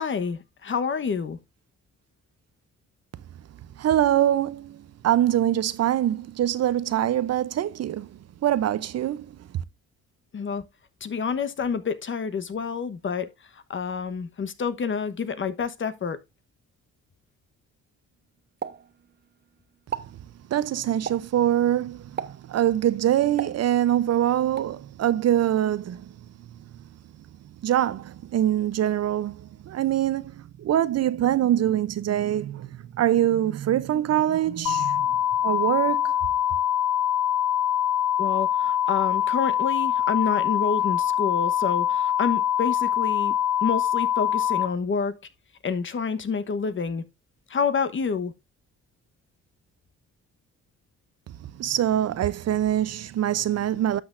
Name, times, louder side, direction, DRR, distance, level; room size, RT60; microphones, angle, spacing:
voice 1, 0.0-1.4 10.3-10.6 11.0-16.2 38.2-43.3 43.6-45.1 45.6-47.0 47.5-48.3, left 5 dB, 40° left, 1.1 m, -28 dB
voice 2, 3.8-4.8 5.0-8.1 8.4-9.3 20.5-22.0 22.5-26.0 27.6-29.4 29.7-30.3 30.6-35.1 35.4-36.1 51.6-54.0, right 11 dB, 55° right, 0.6 m, -23 dB
Explosion, 18.6-19.5 19.8-20.2 21.1-21.4 22.2-22.6 23.4-24.1 24.6-24.8, right 7 dB, 35° right, 0.9 m, -35 dB
sound 1, 34.7-44.7, left 10 dB, 85° left, 0.8 m, -24 dB
12.0 x 6.2 x 2.5 m
cardioid pair, 90°, 30 cm